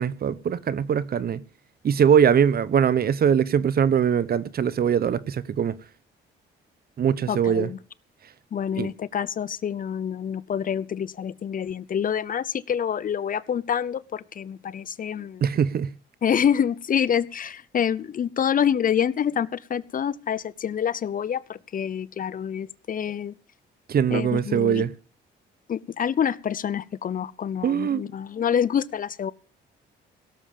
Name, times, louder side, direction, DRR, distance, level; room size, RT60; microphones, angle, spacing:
voice 1, 0.0-1.4 1.8-5.8 7.0-7.7 8.7-8.9 15.4-15.9 23.9-24.9 27.6-28.0, right 8 dB, 50° right, 0.9 m, -22 dB
voice 2, 7.3-7.8 8.5-15.5 16.2-23.3 24.1-24.8 25.7-29.3, left 8 dB, 45° left, 0.6 m, -27 dB
17.5 x 7.5 x 7.2 m
cardioid pair, 90°, 20 cm